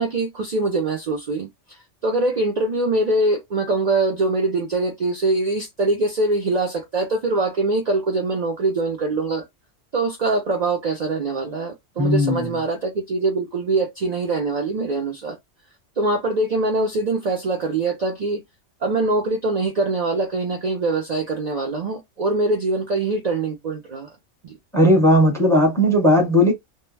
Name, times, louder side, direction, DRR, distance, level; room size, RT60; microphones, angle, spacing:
voice 1, 0.0-1.5 2.0-9.4 9.9-15.4 16.0-18.4 18.8-24.1 24.4-24.6, right 2 dB, 50° right, 0.5 m, -23 dB
voice 2, 12.0-12.5 24.7-26.5, equal, 5° left, 0.9 m, -16 dB
2.2 x 2.1 x 3.1 m
omnidirectional pair, 1.3 m